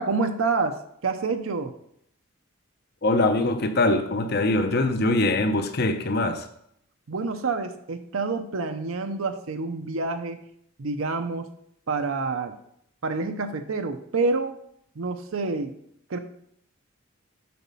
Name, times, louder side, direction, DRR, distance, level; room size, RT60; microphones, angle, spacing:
voice 1, 0.0-1.7 7.1-10.4 10.8-11.5 11.9-12.5 13.0-14.6 15.0-15.7 16.1-16.2, right 3 dB, 85° right, 7 dB, 0.7 m, -28 dB
voice 2, 3.0-6.5, left 2 dB, 50° left, 8 dB, 0.6 m, -23 dB
8.5 x 4.1 x 5.5 m, 0.71 s
head